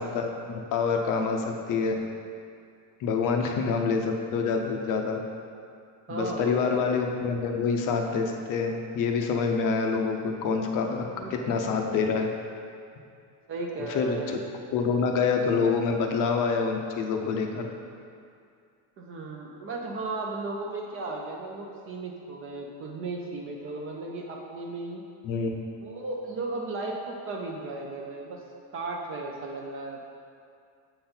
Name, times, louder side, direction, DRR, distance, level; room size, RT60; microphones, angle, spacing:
voice 1, 0.1-2.0 3.0-5.2 6.1-11.0 11.3-12.3 13.9-14.4 14.7-17.7 25.2-25.5, left 5 dB, 45° left, 3 dB, 0.6 m, -26 dB
voice 2, 6.1-6.8 11.1-11.3 13.5-14.4 19.0-25.0 25.8-28.4 28.7-30.0, right 2 dB, 30° right, 0 dB, 0.4 m, -35 dB
7.6 x 3.9 x 4.3 m, 2.3 s
cardioid pair, 165°, 45 cm